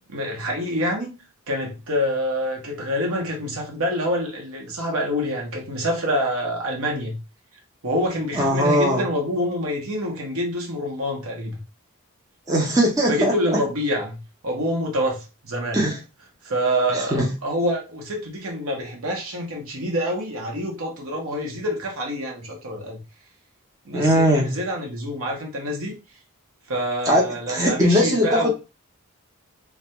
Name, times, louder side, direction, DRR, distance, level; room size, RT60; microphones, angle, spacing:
voice 1, 0.1-1.1 1.5-7.2 7.8-11.6 13.1-15.8 16.4-23.0 23.8-25.9 26.7-28.5, equal, 75° right, 0.8 m, -26 dB
voice 2, 8.4-9.0 12.5-13.3 15.7-16.0 16.9-17.3 23.9-24.5 27.1-28.5, equal, 15° right, 0.4 m, -20 dB
2.2 x 2.2 x 2.8 m
head